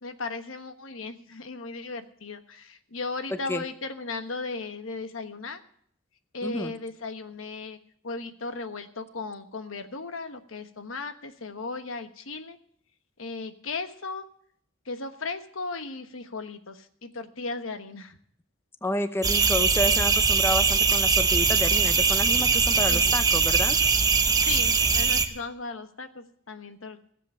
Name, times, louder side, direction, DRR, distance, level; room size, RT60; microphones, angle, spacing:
voice 1, 0.0-5.6 6.3-7.8 8.0-12.6 13.2-14.2 14.8-18.2 22.9-23.1 24.4-27.1, left 3 dB, 90° left, 9 dB, 1.2 m, -36 dB
voice 2, 3.3-3.6 6.4-6.7 18.8-23.8, left 1 dB, 10° left, 10 dB, 0.7 m, -30 dB
sound 1, 19.2-25.3, right 5 dB, 20° right, 0.9 m, -22 dB
16.0 x 7.7 x 8.5 m, 0.64 s
head